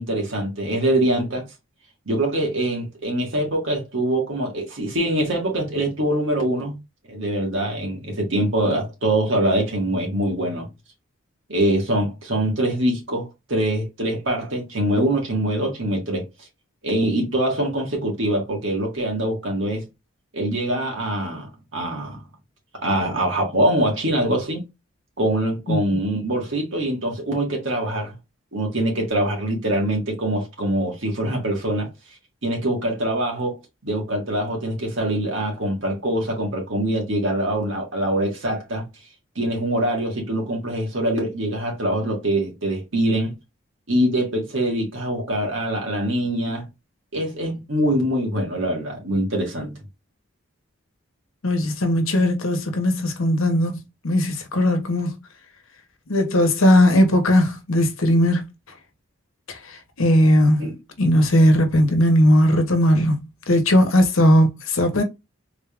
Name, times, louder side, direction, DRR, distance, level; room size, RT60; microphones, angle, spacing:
voice 1, 0.0-1.5 2.1-6.8 7.1-10.7 11.5-16.3 16.8-19.8 20.3-22.2 22.8-24.6 25.2-28.1 28.5-31.9 32.4-33.6 33.8-38.9 39.4-43.3 43.9-46.7 47.1-49.7 60.6-60.8, right 1 dB, 70° right, 1.8 m, -24 dB
voice 2, 51.4-55.2 56.1-58.5 59.5-60.7 61.0-65.0, left 1 dB, 85° left, 1.0 m, -18 dB
3.8 x 3.4 x 2.4 m
head